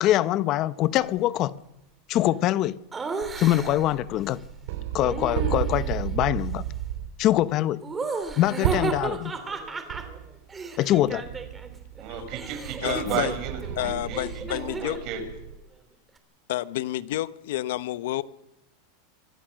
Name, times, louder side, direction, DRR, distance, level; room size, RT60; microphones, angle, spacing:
voice 1, 0.0-1.5 2.1-2.8 3.4-4.4 4.9-6.6 7.2-7.8 8.4-9.3 10.8-11.2, left 14 dB, 40° left, 15 dB, 0.9 m, -23 dB
Laughter, 2.9-4.0 5.0-6.0 7.8-11.7 12.0-15.1, right 3 dB, 15° right, 3.1 m, -34 dB
sound 1, 3.2-7.3 8.6-9.1 9.5-9.6 9.9-10.4 10.9-15.6, right 11 dB, 70° right, 3.2 m, -33 dB
voice 2, 12.0-15.2, right 7 dB, 50° right, 5 dB, 6.3 m, -33 dB
voice 3, 12.8-13.3 13.8-15.0 16.5-18.2, left 14 dB, 75° left, 14 dB, 1.1 m, -29 dB
25.0 x 18.5 x 6.4 m, 0.88 s
supercardioid pair, 135°, 0 cm